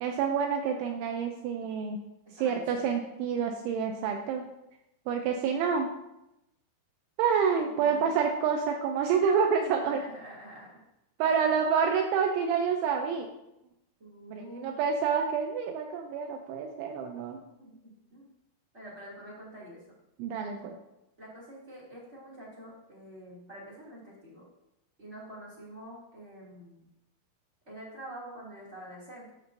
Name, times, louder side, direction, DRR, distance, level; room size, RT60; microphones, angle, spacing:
voice 1, 0.0-2.0 2.4-4.5 5.1-5.9 7.2-10.1 11.2-13.3 14.3-17.4 20.2-20.8, right 6 dB, 90° right, 3 dB, 2.7 m, -28 dB
voice 2, 2.2-2.9 7.6-8.2 9.8-10.7 11.2-11.5 14.0-14.7 17.3-18.3 18.7-19.9 21.2-24.4 25.0-26.9 27.6-29.3, right 1 dB, 25° right, -6 dB, 1.7 m, -47 dB
13.5 x 6.2 x 2.8 m, 0.87 s
omnidirectional pair, 6.0 m